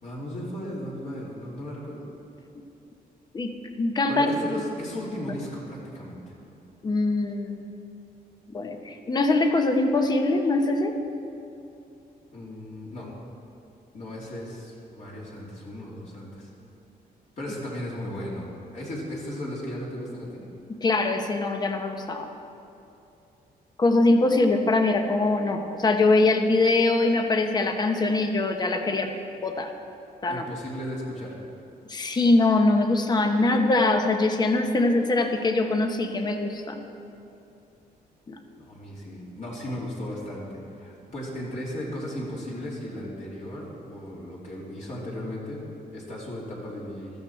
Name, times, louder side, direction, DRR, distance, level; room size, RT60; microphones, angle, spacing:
voice 1, 0.0-2.0 4.1-6.2 12.3-13.1 13.9-16.5 17.4-20.4 30.3-31.4 38.6-45.6 45.9-47.1, left 1 dB, 45° left, -5 dB, 2.9 m, -36 dB
voice 2, 3.8-4.3 6.8-7.7 8.5-10.9 20.8-22.3 23.8-29.1 29.4-29.7 30.2-30.5 31.9-36.8 38.3-38.4, left 2 dB, 25° left, 5 dB, 1.0 m, -23 dB
15.5 x 13.5 x 4.4 m, 2.7 s
wide cardioid pair, 160°, 16 cm